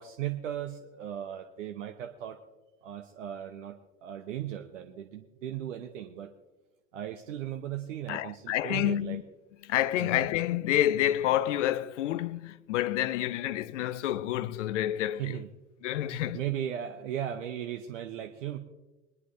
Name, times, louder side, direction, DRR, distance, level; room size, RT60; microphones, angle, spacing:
voice 1, 0.0-2.4 2.8-3.8 4.0-6.3 6.9-9.2 10.0-10.2 15.2-15.5 16.1-18.6, right 11 dB, 70° right, 0.9 m, -37 dB
voice 2, 8.1-9.2 9.6-15.4 15.8-16.4, left 13 dB, 70° left, 0.6 m, -28 dB
22.0 x 11.0 x 2.7 m
figure-of-eight pair, 70°, 39 cm